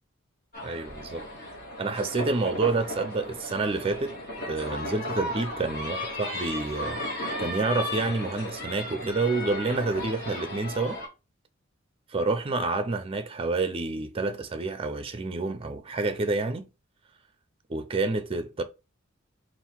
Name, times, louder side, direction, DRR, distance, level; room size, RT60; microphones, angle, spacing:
sound 1, 0.5-11.1, left 1 dB, 50° left, 1.5 m, -35 dB
voice 1, 0.6-1.2 1.8-7.0 7.4-11.0 12.1-16.7 17.7-18.6, right 3 dB, 30° right, 0.4 m, -28 dB
3.7 x 2.5 x 4.3 m
head